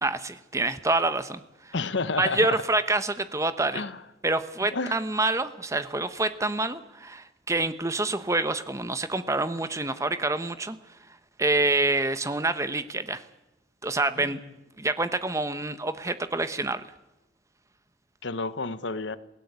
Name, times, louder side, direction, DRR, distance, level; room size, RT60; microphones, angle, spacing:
voice 1, 0.0-1.7 2.2-3.8 4.2-10.8 11.4-13.2 13.8-14.4 14.8-16.8, right 2 dB, 15° right, 1.1 m, -27 dB
voice 2, 1.7-2.6 3.7-4.0 4.7-5.0 14.2-14.5 18.2-19.2, left 3 dB, 80° left, 1.1 m, -30 dB
27.0 x 17.5 x 8.2 m
head